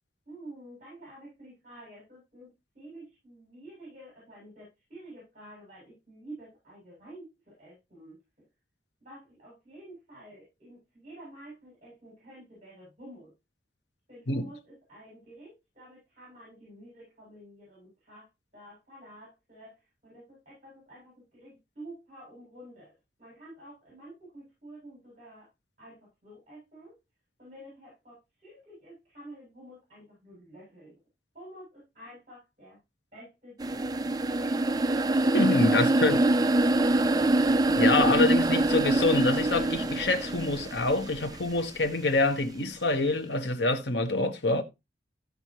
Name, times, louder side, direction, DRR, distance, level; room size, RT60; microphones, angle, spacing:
voice 1, 0.2-8.5 9.0-13.3 14.1-18.3 18.5-22.9 23.2-25.5 25.8-27.0 27.4-31.0 31.3-32.8 33.1-34.6, right 1 dB, 45° right, 7.5 m, -49 dB
sound 1, 33.6-41.6, right 2 dB, 20° right, 0.5 m, -25 dB
voice 2, 35.3-36.2 37.7-44.6, left 2 dB, 80° left, 1.5 m, -26 dB
15.5 x 5.5 x 3.1 m
head